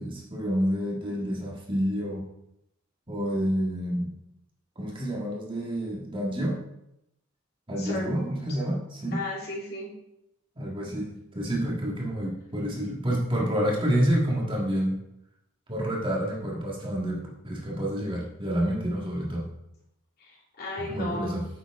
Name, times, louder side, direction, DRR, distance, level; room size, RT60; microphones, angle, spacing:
voice 1, 0.0-2.2 3.1-4.1 4.8-6.6 7.7-9.2 10.6-15.0 15.7-19.5 20.9-21.5, equal, 25° right, -3 dB, 1.7 m, -28 dB
voice 2, 7.8-8.1 9.1-9.9 20.2-21.3, left 2 dB, 50° left, -5 dB, 3.3 m, -34 dB
8.9 x 7.2 x 3.6 m, 0.82 s
head